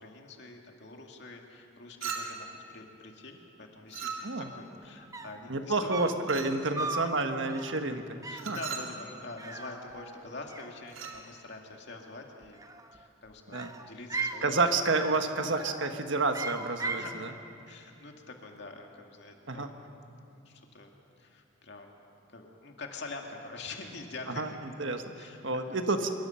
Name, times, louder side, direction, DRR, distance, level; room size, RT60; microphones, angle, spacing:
voice 1, 0.0-5.9 6.6-6.9 8.2-12.6 12.9-14.4 14.7-14.8 17.0-17.2 17.6-19.8 20.3-20.9 21.2-21.9 22.3-24.6 25.2-25.8, left 3 dB, 55° left, 2 dB, 2.3 m, -45 dB
Chink clink, 2.0-2.6 3.9-4.6 6.3-6.7 8.4-9.0 10.9-11.2, right 6 dB, 85° right, 2.4 m, -38 dB
sound 1, 4.8-4.9 5.1-5.5 5.9-6.3 6.8-7.1 7.5-7.8 8.2-8.6 9.4-10.2 10.5-11.2 12.4-13.1 13.5-14.5 15.0-15.3 15.6-15.9 16.3-17.1, right 3 dB, 15° right, 0.8 m, -38 dB
voice 2, 5.5-8.2 8.5-8.6 13.5-13.7 14.4-17.3 19.5-19.7 24.4-24.5 24.8-26.1, right 3 dB, 65° right, 6 dB, 1.5 m, -29 dB
25.5 x 22.0 x 5.8 m, 2.6 s
head